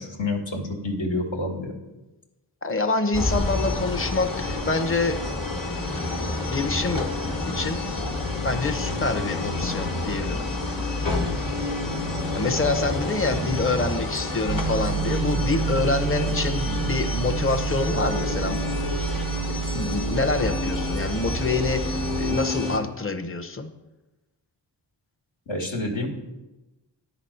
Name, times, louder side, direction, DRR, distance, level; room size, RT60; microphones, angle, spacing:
voice 1, 0.0-1.8 25.5-26.1, left 2 dB, 75° left, 0 dB, 1.5 m, -28 dB
voice 2, 2.6-5.2 6.5-7.0 7.5-7.8 8.4-10.5 12.3-19.2 19.7-23.7, left 3 dB, 30° left, 8 dB, 0.8 m, -26 dB
sound 1, 3.1-22.8, left 2 dB, 45° left, 1.3 m, -29 dB
sound 2, 14.5-22.4, right 6 dB, 35° right, 0.4 m, -29 dB
10.0 x 4.1 x 5.6 m, 1.1 s
cardioid pair, 50°, 44 cm